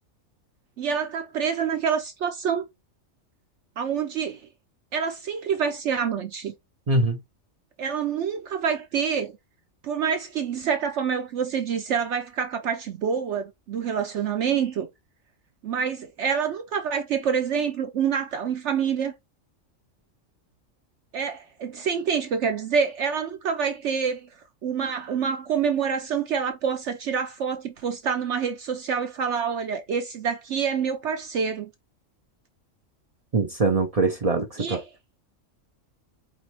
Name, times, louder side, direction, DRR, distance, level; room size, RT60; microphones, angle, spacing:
voice 1, 0.8-2.6 3.8-4.4 4.9-6.5 7.8-9.3 9.8-14.9 15.6-19.1 21.1-24.3 24.6-31.7 34.6-34.8, right 7 dB, 65° right, 0.9 m, -27 dB
voice 2, 6.9-7.2 33.3-34.8, right 3 dB, 45° right, 0.4 m, -23 dB
4.8 x 3.1 x 3.0 m
omnidirectional pair, 1.4 m